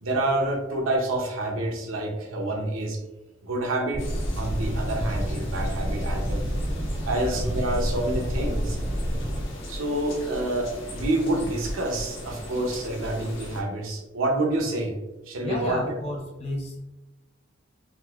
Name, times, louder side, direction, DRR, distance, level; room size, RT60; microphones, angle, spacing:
voice 1, 0.0-3.0 3.4-4.0 4.4-6.4 7.1-8.8 9.7-14.9 15.3-15.9, right 1 dB, 90° right, 2 dB, 0.7 m, -27 dB
sound 1, 3.9-9.4, equal, 30° right, 0.4 m, -29 dB
sound 2, 4.0-13.6, left 1 dB, 85° left, 1.0 m, -38 dB
voice 2, 15.4-16.8, equal, 30° left, -1 dB, 0.7 m, -32 dB
3.7 x 2.5 x 2.4 m, 0.99 s
head